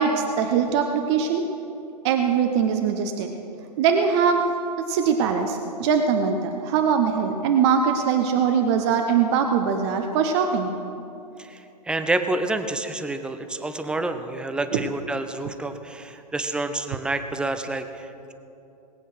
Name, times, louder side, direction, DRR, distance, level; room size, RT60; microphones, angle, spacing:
voice 1, 0.0-1.4 2.0-3.3 3.8-4.4 4.8-10.7 14.7-14.8, right 6 dB, 40° right, 5 dB, 1.0 m, -22 dB
voice 2, 11.4-18.3, right 2 dB, 5° right, 9 dB, 0.7 m, -28 dB
20.0 x 8.3 x 6.3 m, 2.7 s
figure-of-eight pair, 115°, 21 cm